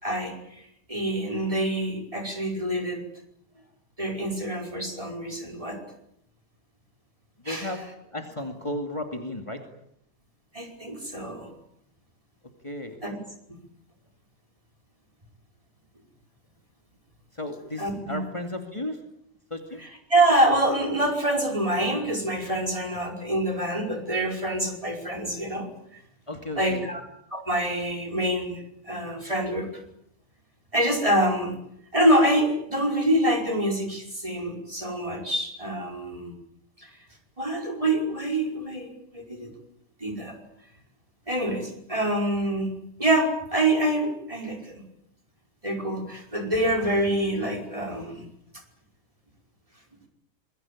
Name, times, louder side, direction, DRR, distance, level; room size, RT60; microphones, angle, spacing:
voice 1, 0.0-0.3 0.9-3.0 4.0-5.8 7.5-7.7 10.5-11.5 13.0-13.2 17.8-18.2 20.1-25.7 26.6-27.0 27.3-29.8 30.7-31.6 31.9-36.3 36.8-36.9 37.4-39.5 40.0-40.4 41.3-44.8 45.6-48.3, right 1 dB, 25° right, 4 dB, 5.4 m, -26 dB
voice 2, 7.4-9.6 12.6-13.0 17.3-19.0 19.5-19.8 26.3-26.9, left 1 dB, 25° left, 4 dB, 2.6 m, -34 dB
27.5 x 22.0 x 8.6 m, 0.74 s
omnidirectional pair, 1.3 m